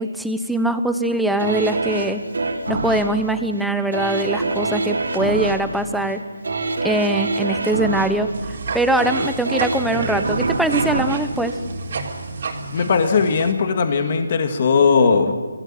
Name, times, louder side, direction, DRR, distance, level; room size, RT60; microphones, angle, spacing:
voice 1, 0.0-2.2 2.7-6.2 6.8-8.3 8.7-11.6, right 1 dB, ahead, 8 dB, 0.9 m, -22 dB
sound 1, 1.4-12.3 12.8-12.9, right 3 dB, 75° right, 4.0 m, -26 dB
sound 2, 8.3-13.5, right 3 dB, 50° right, 3.7 m, -31 dB
voice 2, 12.7-15.3, left 5 dB, 40° left, 6 dB, 1.9 m, -18 dB
26.0 x 16.5 x 7.5 m, 1.4 s
figure-of-eight pair, 160°, 0 cm